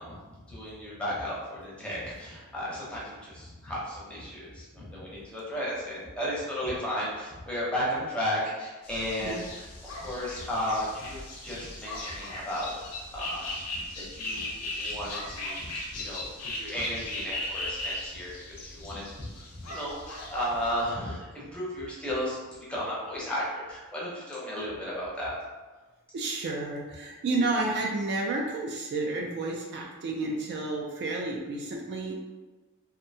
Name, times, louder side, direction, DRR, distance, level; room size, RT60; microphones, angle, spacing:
voice 1, 0.0-22.4 22.7-25.4, equal, 5° left, -7 dB, 0.6 m, -34 dB
sound 1, 8.8-20.9, left 2 dB, 80° left, 0.6 m, -38 dB
voice 2, 26.1-32.2, right 2 dB, 50° right, -1 dB, 0.3 m, -31 dB
2.6 x 2.1 x 2.6 m, 1.2 s
head